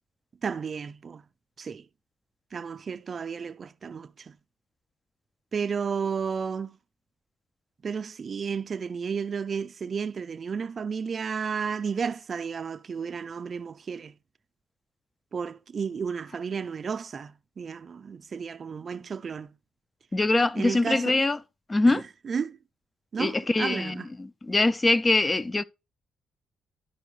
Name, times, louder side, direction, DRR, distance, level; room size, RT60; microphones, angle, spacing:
voice 1, 0.4-1.2 1.6-1.9 2.5-4.3 5.5-6.8 7.8-14.2 15.3-19.6 20.6-21.2 21.9-22.6 23.1-24.1, right 6 dB, 45° right, 0.4 m, -32 dB
voice 2, 20.1-21.4 21.7-22.0 23.2-25.6, left 2 dB, 25° left, 0.3 m, -23 dB
11.5 x 4.5 x 3.1 m
cardioid pair, 85°, 0 cm